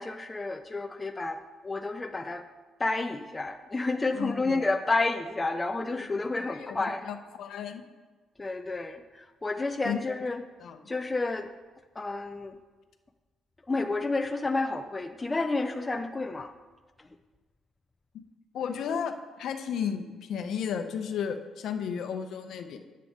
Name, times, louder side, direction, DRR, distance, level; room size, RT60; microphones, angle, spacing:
voice 1, 0.0-2.5 2.8-7.1 8.4-10.4 10.9-11.5 12.0-12.6 13.7-16.5, left 3 dB, 15° left, 6 dB, 0.3 m, -30 dB
voice 2, 4.2-4.6 5.9-7.8 9.8-10.0 10.6-10.8 18.5-22.8, left 7 dB, 65° left, 7 dB, 0.7 m, -34 dB
9.8 x 7.6 x 3.5 m, 1.3 s
cardioid pair, 155°, 0 cm